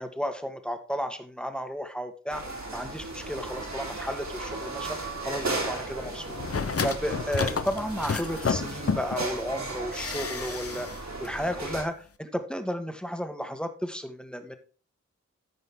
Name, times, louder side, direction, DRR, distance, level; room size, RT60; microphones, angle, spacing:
voice 1, 0.0-2.4 2.7-6.4 6.8-14.6, equal, 5° left, 7 dB, 1.7 m, -33 dB
sound 1, 2.3-11.8, right 2 dB, 60° right, 3.7 m, -36 dB
sound 2, 6.3-9.3 9.9-11.0 11.2-11.3, left 5 dB, 50° left, 0.9 m, -31 dB
14.0 x 5.4 x 3.8 m, 0.38 s
cardioid pair, 55°, 31 cm